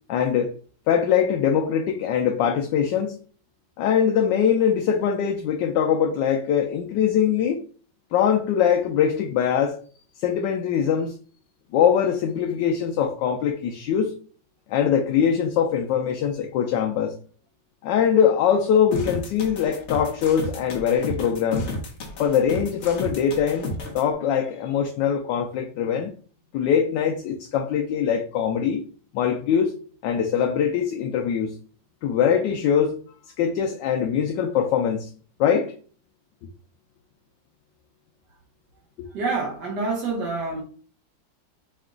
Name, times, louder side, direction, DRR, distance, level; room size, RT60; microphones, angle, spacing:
voice 1, 0.1-0.5 0.9-3.2 3.8-7.6 8.1-9.8 10.2-11.1 11.7-14.1 14.7-17.2 17.8-21.7 22.2-23.7 23.9-26.1 26.5-28.8 29.1-29.8 30.0-31.6 32.0-33.0 33.4-35.1 35.4-35.7, left 8 dB, 75° left, 1.2 m, -22 dB
sound 1, 18.9-24.0, left 2 dB, 50° left, 1.0 m, -32 dB
voice 2, 39.1-40.6, right 3 dB, 65° right, 1.5 m, -27 dB
5.0 x 2.2 x 3.6 m
omnidirectional pair, 2.0 m